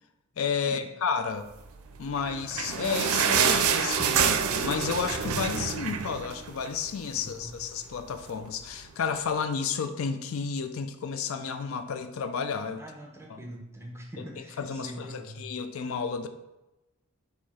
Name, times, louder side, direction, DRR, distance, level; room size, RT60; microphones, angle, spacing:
voice 1, 0.4-1.5 2.0-12.8 13.3-13.4 14.2-16.3, left 6 dB, 75° left, 9 dB, 0.4 m, -32 dB
sound 1, 2.1-6.9 7.2-7.3 7.6-7.8 8.5-8.6, right 7 dB, 85° right, 0.4 m, -27 dB
voice 2, 7.2-7.6 12.8-15.4, equal, 15° right, 0 dB, 0.7 m, -44 dB
4.7 x 2.7 x 4.2 m, 0.98 s
head